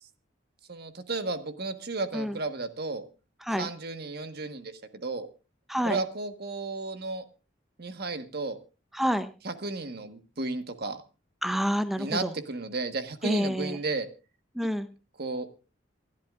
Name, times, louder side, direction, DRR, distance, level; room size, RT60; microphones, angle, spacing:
voice 1, 0.7-3.0 3.6-4.7 5.0-5.3 5.8-7.2 7.8-8.6 9.4-11.0 12.0-14.1 15.2-15.5, right 3 dB, 55° right, 8 dB, 1.5 m, -33 dB
voice 2, 5.7-6.0 8.9-9.3 11.4-12.3 13.2-13.8 14.5-14.9, equal, ahead, 10 dB, 0.7 m, -28 dB
27.5 x 11.5 x 2.5 m, 0.31 s
head